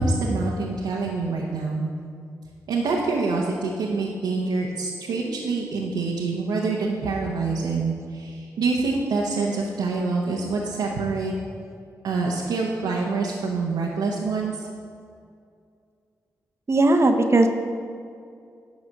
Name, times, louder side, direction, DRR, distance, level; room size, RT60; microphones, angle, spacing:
voice 1, 0.0-1.9 2.7-11.3 12.0-14.6, right 3 dB, 85° right, -2 dB, 0.9 m, -26 dB
voice 2, 16.7-17.5, right 2 dB, 40° right, 5 dB, 0.9 m, -17 dB
11.0 x 4.2 x 6.5 m, 2.4 s
supercardioid pair, 45°, 7 cm